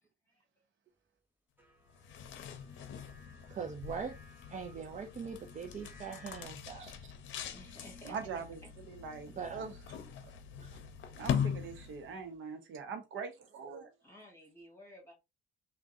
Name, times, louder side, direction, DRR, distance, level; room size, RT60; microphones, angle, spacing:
sound 1, 1.6-6.5, left 1 dB, 10° right, 1.1 m, -60 dB
sound 2, 1.9-12.2, left 8 dB, 75° left, 0.6 m, -41 dB
voice 1, 3.5-4.2 4.5-6.9 9.4-9.7 10.7-10.8, right 6 dB, 40° right, 0.4 m, -41 dB
voice 2, 7.5-8.7 14.0-15.1, equal, 15° left, 1.9 m, -54 dB
voice 3, 8.0-9.8 11.2-13.9, right 5 dB, 80° right, 0.8 m, -43 dB
3.5 x 2.2 x 2.6 m
cardioid pair, 90°, 20 cm